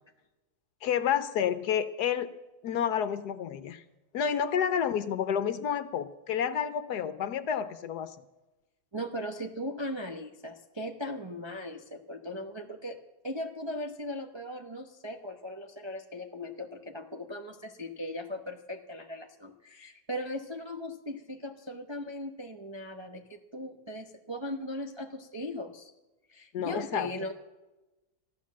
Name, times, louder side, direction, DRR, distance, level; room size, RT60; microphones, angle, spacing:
voice 1, 0.8-2.3 2.6-3.8 4.1-8.2 26.5-27.1, left 8 dB, 65° left, 12 dB, 1.1 m, -29 dB
voice 2, 8.9-13.0 13.2-25.9 26.3-27.3, left 1 dB, 30° right, 3 dB, 0.5 m, -38 dB
14.0 x 11.5 x 7.3 m, 1.1 s
omnidirectional pair, 2.1 m